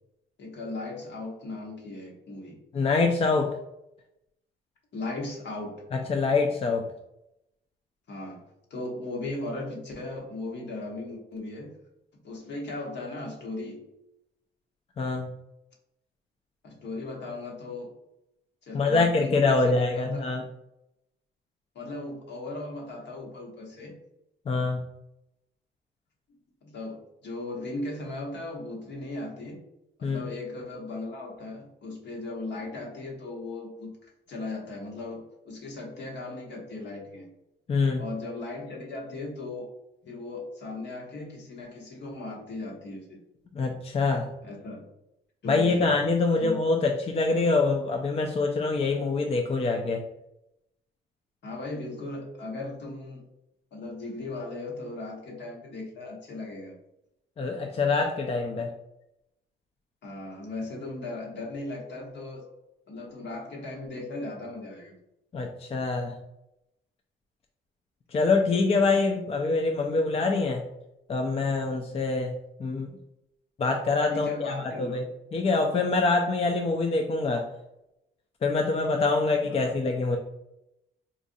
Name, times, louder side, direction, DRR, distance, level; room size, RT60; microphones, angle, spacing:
voice 1, 0.4-2.6 4.9-5.9 8.1-11.7 12.2-13.8 16.6-17.9 18.6-20.3 21.7-23.9 26.6-29.6 30.0-37.3 38.0-39.7 40.1-43.2 44.4-44.9 45.4-45.9 46.4-46.6 51.4-53.2 53.7-56.7 60.0-62.4 62.9-64.9 74.1-75.0 79.5-79.8, left 2 dB, 60° left, -1 dB, 1.2 m, -37 dB
voice 2, 2.7-3.6 5.9-6.8 15.0-15.3 18.7-20.4 24.5-24.8 30.0-30.3 37.7-38.0 43.5-44.3 45.5-50.0 57.4-58.7 65.3-66.2 68.1-70.7 71.1-72.9 73.6-75.0 75.3-77.5 78.4-80.2, left 3 dB, 30° left, 3 dB, 0.4 m, -25 dB
4.0 x 2.4 x 2.6 m, 0.86 s
cardioid pair, 90°, 20 cm